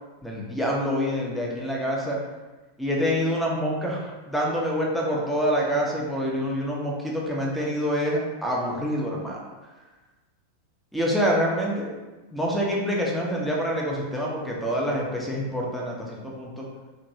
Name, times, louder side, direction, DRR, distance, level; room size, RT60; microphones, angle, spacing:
voice 1, 0.2-2.2 2.8-9.4 10.9-11.9 12.3-16.7, equal, ahead, -4 dB, 0.7 m, -26 dB
3.0 x 2.6 x 2.6 m, 1.2 s
figure-of-eight pair, 90°, 0 cm